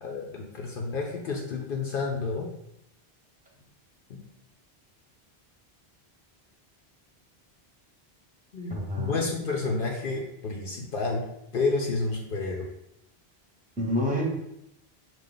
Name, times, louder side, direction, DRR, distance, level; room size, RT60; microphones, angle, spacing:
voice 1, 0.0-2.5 8.5-11.2 11.5-12.7, left 3 dB, 60° left, 0 dB, 0.8 m, -30 dB
voice 2, 8.7-9.3 13.8-14.2, left 1 dB, 10° right, -3 dB, 0.9 m, -28 dB
4.8 x 2.4 x 3.8 m, 0.82 s
omnidirectional pair, 1.1 m